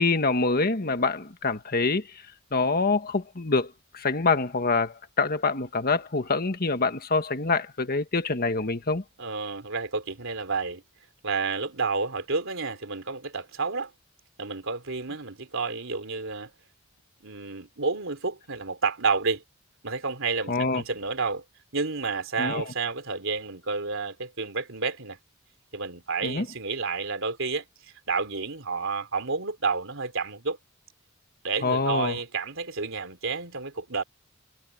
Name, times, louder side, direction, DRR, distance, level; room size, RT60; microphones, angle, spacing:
voice 1, 0.0-2.0 2.5-9.0 20.5-20.8 22.4-22.6 26.2-26.5 31.6-32.2, left 3 dB, 45° left, 1.6 m, -25 dB
voice 2, 9.2-10.8 11.2-13.9 14.4-16.5 17.2-19.4 19.8-21.4 21.7-25.2 25.7-27.6 28.1-30.6 31.4-34.0, right 4 dB, 65° right, 3.6 m, -30 dB
head